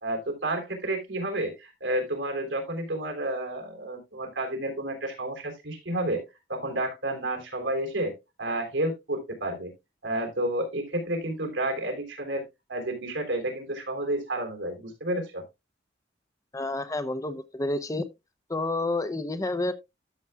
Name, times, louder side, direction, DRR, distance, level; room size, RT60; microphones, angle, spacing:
voice 1, 0.0-6.2 6.5-8.1 8.4-9.7 10.0-12.4 12.7-15.4, right 1 dB, 85° right, 3.4 m, -30 dB
voice 2, 16.5-18.1 18.5-19.7, left 2 dB, 20° left, 0.6 m, -29 dB
13.0 x 7.0 x 2.3 m
head